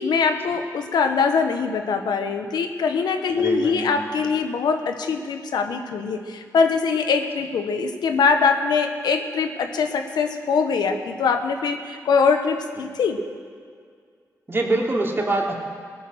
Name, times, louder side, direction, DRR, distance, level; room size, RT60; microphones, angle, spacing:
voice 1, 0.0-13.2, left 5 dB, 80° left, 6 dB, 1.2 m, -22 dB
voice 2, 3.4-4.0 14.5-15.5, right 2 dB, 35° right, -1 dB, 2.8 m, -24 dB
18.5 x 9.3 x 6.3 m, 2.1 s
cardioid pair, 55°, 7 cm